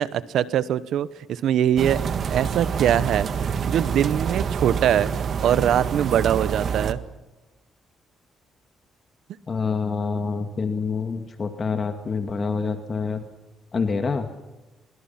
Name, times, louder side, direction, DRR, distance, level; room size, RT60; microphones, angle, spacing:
voice 1, 0.0-2.0 2.3-5.1 5.4-7.0, right 10 dB, 75° right, 16 dB, 1.0 m, -22 dB
sound 1, 1.8-6.9, right 6 dB, 55° right, 1.6 m, -27 dB
voice 2, 9.5-13.2 13.7-14.3, left 5 dB, 40° left, 5 dB, 2.2 m, -26 dB
25.0 x 23.5 x 5.9 m, 1.1 s
cardioid pair, 90°, 0 cm